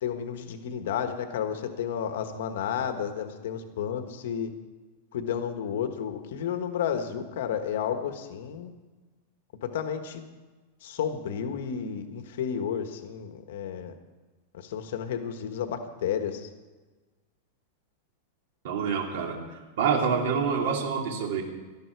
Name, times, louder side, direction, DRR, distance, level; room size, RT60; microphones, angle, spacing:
voice 1, 0.0-4.5 5.1-8.7 9.6-10.2 10.8-13.9 14.5-16.5, left 8 dB, 70° left, 7 dB, 1.4 m, -32 dB
voice 2, 18.6-19.4 19.8-21.4, right 6 dB, 65° right, 2 dB, 3.1 m, -26 dB
18.0 x 13.5 x 4.7 m, 1.3 s
supercardioid pair, 155°, 0 cm